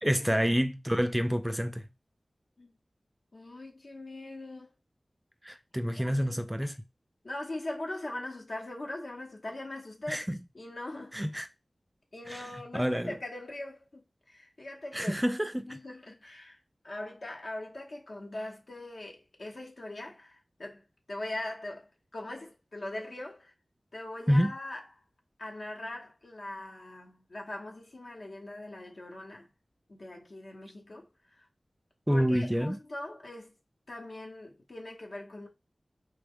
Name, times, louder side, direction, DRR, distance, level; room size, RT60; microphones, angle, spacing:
voice 1, 0.0-1.9 5.4-6.8 10.1-10.4 11.1-11.5 12.3-13.1 14.9-15.8 24.3-24.5 32.1-32.8, equal, 10° right, 0.3 m, -28 dB
voice 2, 3.3-4.7 5.5-5.6 6.0-6.4 7.2-10.2 10.5-11.2 12.1-15.2 15.7-23.5 23.9-24.8 25.4-29.5 29.9-31.1 31.4-31.5 32.1-33.5 33.9-35.5, left 1 dB, 70° left, 0.9 m, -41 dB
3.3 x 2.2 x 3.5 m
wide cardioid pair, 70°, 0 cm